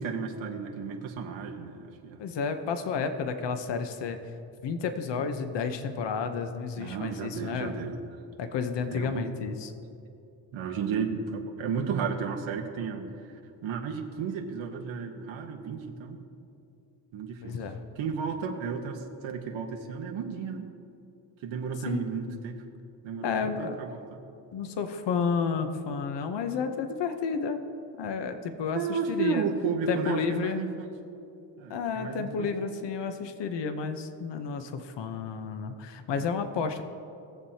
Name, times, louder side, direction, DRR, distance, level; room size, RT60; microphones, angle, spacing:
voice 1, 0.0-2.2 6.8-8.0 8.9-9.3 10.5-13.1 13.6-16.2 17.1-17.6 18.0-20.7 21.4-22.5 23.0-24.2 28.7-30.9 31.6-32.5 36.1-36.3, right 5 dB, 90° right, 2 dB, 1.1 m, -33 dB
voice 2, 2.2-4.2 4.6-7.8 8.4-9.7 17.4-17.8 21.9-22.0 22.3-22.4 23.2-23.8 24.5-27.6 28.0-29.4 29.9-30.6 31.7-36.8, left 5 dB, 65° left, 8 dB, 0.9 m, -31 dB
19.5 x 7.3 x 2.8 m, 2.6 s
cardioid pair, 105°, 45 cm